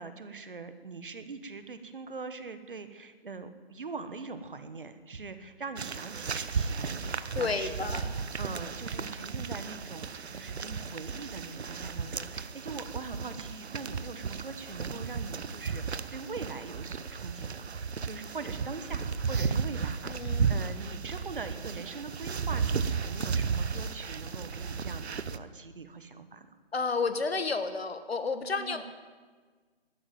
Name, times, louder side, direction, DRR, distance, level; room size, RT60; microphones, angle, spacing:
voice 1, 0.0-8.0 8.4-26.5 28.6-28.8, right 4 dB, 55° right, 11 dB, 1.2 m, -42 dB
sound 1, 5.8-25.4, right 5 dB, 75° right, 0.8 m, -34 dB
voice 2, 7.3-8.1 20.1-20.5 26.7-28.8, left 4 dB, 70° left, 10 dB, 1.5 m, -31 dB
12.0 x 10.5 x 9.1 m, 1.5 s
hypercardioid pair, 175°, 32 cm